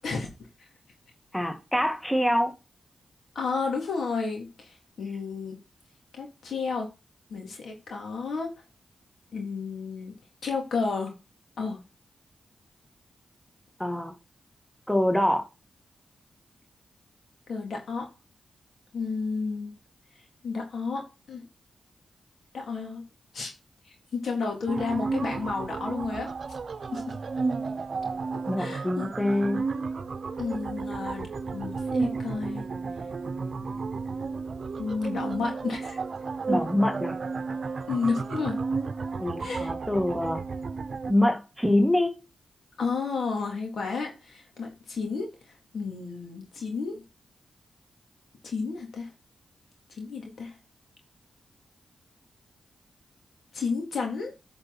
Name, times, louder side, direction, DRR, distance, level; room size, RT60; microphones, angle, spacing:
voice 1, 1.3-2.5 13.8-14.1 14.9-15.4 28.5-29.6 36.5-37.2 39.2-40.4 41.1-42.1, left 1 dB, 5° left, 4 dB, 2.0 m, -25 dB
voice 2, 3.4-5.6 6.2-6.9 7.3-8.5 9.3-10.1 10.4-11.1 11.6-11.8 17.5-18.1 18.9-19.7 20.4-21.4 22.5-23.0 23.3-23.5 24.1-26.3 26.9-27.1 28.6-29.1 30.4-31.3 31.5-32.6 34.8-36.0 37.9-38.6 39.4-39.7 42.8-45.3 45.7-47.0 48.4-49.1 50.0-50.5 53.5-54.3, left 4 dB, 75° left, 2 dB, 3.5 m, -31 dB
sound 1, 24.7-41.1, right 4 dB, 60° right, 0.9 m, -32 dB
9.4 x 5.9 x 4.3 m, 0.29 s
cardioid pair, 50°, 0 cm